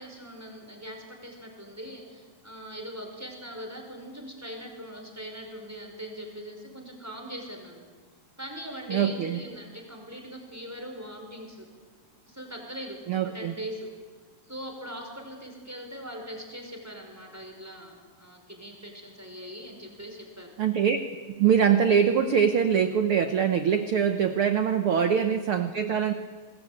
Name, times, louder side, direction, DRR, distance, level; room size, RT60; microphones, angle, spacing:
voice 1, 0.0-7.8 8.4-11.7 12.3-13.9 14.5-20.5 24.9-25.1, equal, 5° right, 2 dB, 5.1 m, -41 dB
voice 2, 8.9-9.4 13.1-13.5 20.6-21.0 21.4-26.1, right 7 dB, 70° right, 8 dB, 1.3 m, -23 dB
27.5 x 20.5 x 8.7 m, 1.5 s
omnidirectional pair, 3.9 m